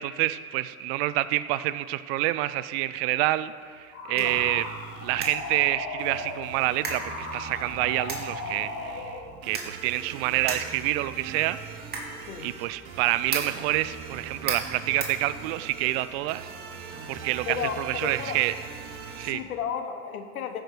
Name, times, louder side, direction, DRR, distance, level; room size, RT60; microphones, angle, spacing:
voice 1, 0.0-4.6 5.0-9.2 9.4-11.6 12.4-16.5 17.1-18.5 19.2-19.4, right 16 dB, 45° right, 15 dB, 0.4 m, -27 dB
sound 1, 3.6-15.9, right 3 dB, 20° right, 2.3 m, -39 dB
sound 2, 3.9-9.3, left 2 dB, 35° left, 1.9 m, -37 dB
sound 3, 4.2-19.3, right 5 dB, 70° right, 1.4 m, -42 dB
voice 2, 17.5-18.4 19.2-20.6, left 7 dB, 80° left, 7 dB, 1.2 m, -33 dB
15.0 x 6.3 x 5.0 m, 2.1 s
hypercardioid pair, 100°, 43 cm